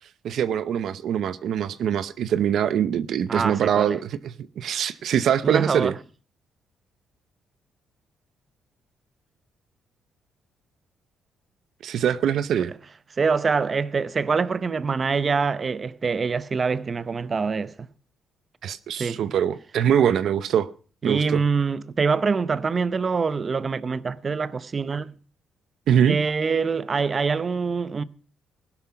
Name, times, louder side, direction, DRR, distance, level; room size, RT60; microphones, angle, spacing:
voice 1, 0.2-5.9 11.8-12.7 18.6-20.7 21.0-21.4 25.9-26.2, right 9 dB, 70° right, 0.7 m, -23 dB
voice 2, 3.3-4.0 5.4-5.9 13.2-17.9 19.0-19.2 21.0-25.1 26.1-28.0, right 5 dB, 35° right, 0.8 m, -25 dB
16.0 x 12.0 x 5.9 m
cardioid pair, 90°, 0 cm